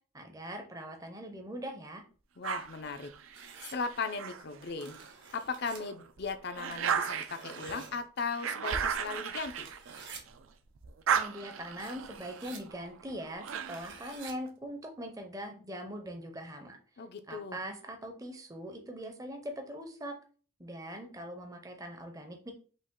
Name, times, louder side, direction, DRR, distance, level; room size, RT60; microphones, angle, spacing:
voice 1, 0.1-2.0 11.1-16.8 17.3-20.1 20.6-22.5, equal, 15° right, 4 dB, 0.6 m, -42 dB
voice 2, 2.4-5.0 5.3-9.7 17.0-17.6, left 4 dB, 50° left, 9 dB, 0.5 m, -37 dB
sound 1, 2.4-5.1 5.6-10.4 10.8-14.1, right 7 dB, 75° right, 0.5 m, -36 dB
sound 2, 3.3-3.7 4.6-5.8 6.7-8.0 9.1-9.2 9.5-10.2 11.5-11.6 11.8-12.6 13.5-14.3, right 6 dB, 55° right, 0.9 m, -50 dB
5.2 x 2.4 x 3.6 m, 0.40 s
head